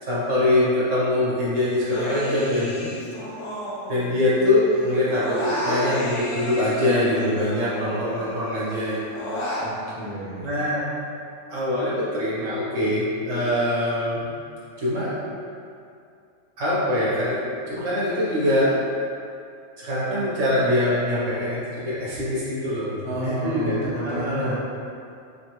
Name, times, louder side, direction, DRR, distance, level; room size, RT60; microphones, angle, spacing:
voice 1, 0.0-2.8 3.9-9.2 10.4-10.8 11.5-14.2 14.8-15.1 16.6-17.4 17.7-18.7 19.8-22.9 23.2-24.5, left 1 dB, 75° right, -8 dB, 1.6 m, -23 dB
Human voice, 1.8-4.5 4.7-8.2 8.6-9.7, equal, 70° left, 1.1 m, -32 dB
voice 2, 2.6-2.9 9.6-10.5 23.0-24.5, equal, 5° left, -10 dB, 0.7 m, -31 dB
4.1 x 3.6 x 3.1 m, 2.5 s
omnidirectional pair, 1.3 m